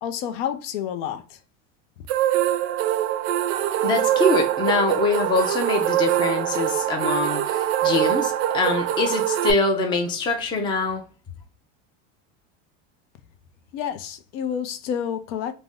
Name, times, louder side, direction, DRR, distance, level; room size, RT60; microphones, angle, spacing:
voice 1, 0.0-1.4 13.7-15.5, left 8 dB, 70° left, 0.6 m, -29 dB
sound 1, 2.1-9.5, right 12 dB, 60° right, 0.5 m, -23 dB
voice 2, 3.8-11.0, left 3 dB, 15° left, 0.4 m, -24 dB
2.6 x 2.1 x 3.5 m
supercardioid pair, 130°, 37 cm